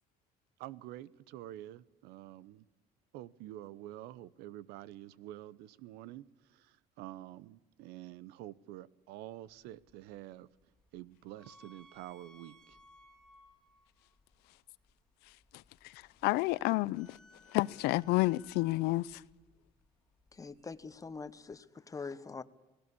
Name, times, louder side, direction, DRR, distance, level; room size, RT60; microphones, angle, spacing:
voice 1, 0.6-2.6 3.1-10.5 10.9-12.8, right 14 dB, 85° right, 0.8 m, -48 dB
sound 1, 9.4-21.6, left 1 dB, 5° left, 2.6 m, -64 dB
voice 2, 15.5-17.2 17.5-19.2, left 20 dB, 85° left, 0.6 m, -31 dB
voice 3, 20.3-22.4, left 4 dB, 20° left, 1.1 m, -44 dB
19.0 x 17.0 x 8.5 m
cardioid pair, 115°, 16 cm